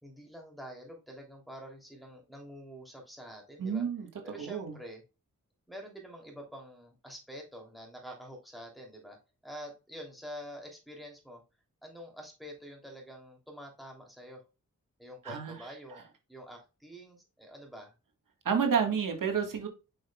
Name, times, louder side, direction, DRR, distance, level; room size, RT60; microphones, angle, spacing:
voice 1, 0.0-3.8 4.2-5.0 5.7-9.2 9.4-11.4 11.8-14.4 15.0-17.9, equal, ahead, 3.1 m, -47 dB
voice 2, 3.6-4.8 15.2-16.0 18.4-19.7, right 6 dB, 90° right, 1.8 m, -31 dB
7.5 x 6.0 x 2.4 m
wide cardioid pair, 120°, 32 cm